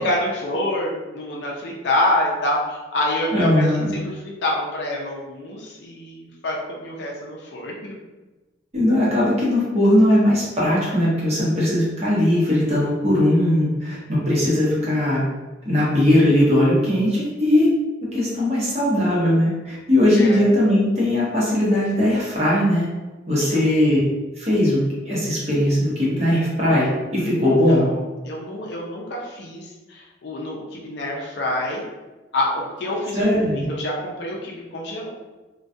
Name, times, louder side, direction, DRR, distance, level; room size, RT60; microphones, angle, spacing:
voice 1, 0.0-8.0 14.3-14.9 20.2-20.4 23.4-23.6 27.4-31.8 32.3-33.3 33.5-35.1, left 1 dB, 65° left, -2 dB, 0.4 m, -27 dB
voice 2, 3.3-3.9 8.7-15.2 15.6-17.7 18.1-22.9 23.3-24.0 24.4-27.9 33.1-33.6, left 1 dB, 35° right, -7 dB, 0.9 m, -19 dB
2.2 x 2.2 x 2.6 m, 1.2 s
head